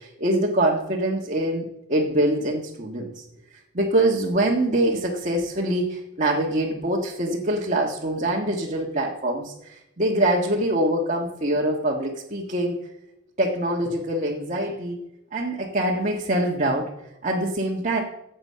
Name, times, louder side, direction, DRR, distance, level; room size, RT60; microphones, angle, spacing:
voice 1, 0.0-3.2 3.7-12.7 13.4-15.0 15.3-16.9 17.2-18.0, right 1 dB, 35° right, -2 dB, 1.5 m, -24 dB
15.0 x 8.0 x 5.6 m, 0.89 s
head